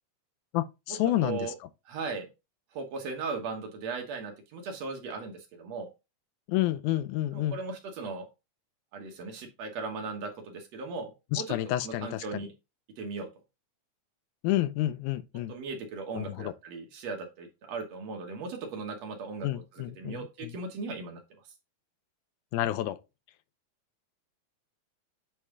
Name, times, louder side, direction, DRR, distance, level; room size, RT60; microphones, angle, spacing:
voice 1, 0.5-1.5 6.5-7.6 11.3-12.4 14.4-15.5 16.1-16.5 19.4-20.6 22.5-23.0, left 14 dB, 85° left, 2.0 m, -29 dB
voice 2, 1.2-1.5 1.9-2.3 2.7-5.9 7.3-8.3 8.9-11.6 11.8-12.5 13.0-13.3 15.5-19.5 19.7-21.2, right 4 dB, 65° right, 2.2 m, -37 dB
8.3 x 3.3 x 3.6 m
omnidirectional pair, 3.4 m